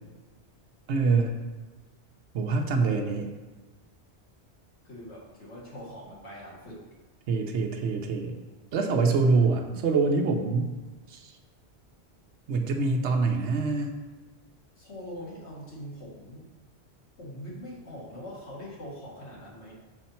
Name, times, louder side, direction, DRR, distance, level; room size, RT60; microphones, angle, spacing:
voice 1, 0.9-1.4 2.3-3.3 7.3-8.3 8.7-10.7 11.1-11.3 12.5-14.0, right 4 dB, 85° right, 4 dB, 1.1 m, -25 dB
voice 2, 4.8-6.8 14.8-16.4 17.2-19.7, equal, 85° left, -5 dB, 2.3 m, -42 dB
6.9 x 4.2 x 5.7 m, 1.3 s
omnidirectional pair, 1.1 m